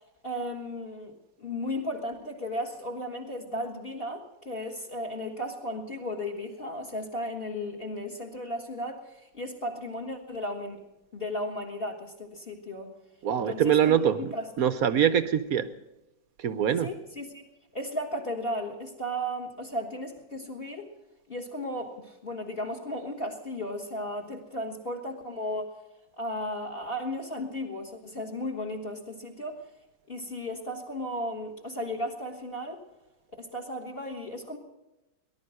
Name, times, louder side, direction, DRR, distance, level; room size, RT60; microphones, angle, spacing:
voice 1, 0.2-1.1 1.4-10.8 11.1-12.9 13.4-14.5 16.8-17.4 17.7-20.9 21.3-25.7 26.2-29.6 30.1-32.8 33.4-34.6, left 1 dB, 30° left, 4 dB, 1.8 m, -35 dB
voice 2, 13.2-15.7 16.4-16.9, right 9 dB, 60° right, 12 dB, 1.0 m, -24 dB
19.0 x 11.5 x 6.5 m, 0.99 s
omnidirectional pair, 2.1 m